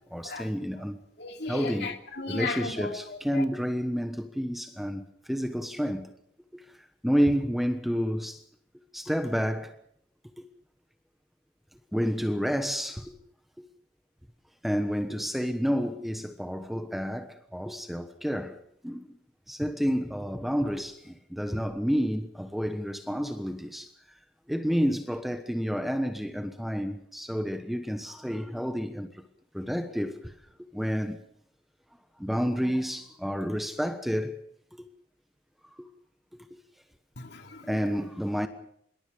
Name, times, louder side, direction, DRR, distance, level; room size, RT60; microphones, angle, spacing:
voice 1, 0.1-1.0 1.5-2.0 2.3-6.1 6.5-6.6 7.0-8.4 8.9-9.7 11.9-13.1 13.6-13.7 14.6-18.6 18.8-19.2 19.5-23.9 24.5-29.2 29.5-30.3 30.7-31.2 32.2-34.4 34.7-34.8 35.6-35.9 37.6-38.5, equal, ahead, 1.2 m, -30 dB
voice 2, 1.2-3.0 3.3-3.4 37.2-37.8, left 4 dB, 60° left, 2.8 m, -36 dB
25.5 x 22.5 x 5.2 m
head